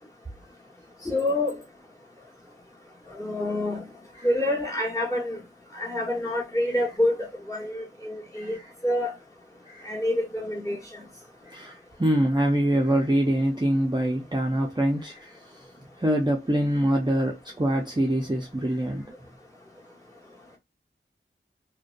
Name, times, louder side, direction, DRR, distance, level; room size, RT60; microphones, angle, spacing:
voice 1, 1.0-1.6 3.2-3.9 4.2-5.4 5.7-8.6 8.8-9.1 9.8-10.8, left 1 dB, 15° left, 1.3 m, -27 dB
voice 2, 9.7-10.0 11.5-15.4 16.0-19.2, right 1 dB, 20° right, 0.5 m, -25 dB
2.4 x 2.1 x 2.5 m
wide cardioid pair, 40°, 21 cm